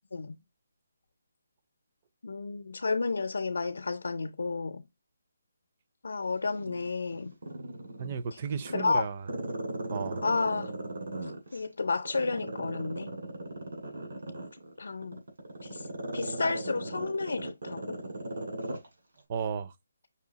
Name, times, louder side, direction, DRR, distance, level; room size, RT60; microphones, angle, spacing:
voice 1, 2.2-4.8 6.0-7.3 8.7-9.1 10.2-10.7 11.5-13.1 14.8-15.2 15.7-15.8 16.1-18.0, left 4 dB, 80° left, 0.5 m, -31 dB
Growling, 6.4-8.2 8.6-11.6 12.0-18.9 19.2-19.3, right 2 dB, 75° right, 2.6 m, -37 dB
voice 2, 8.0-9.3 9.9-10.3 19.3-19.7, right 6 dB, 25° right, 0.4 m, -34 dB
5.5 x 2.3 x 4.0 m
hypercardioid pair, 170°, 0 cm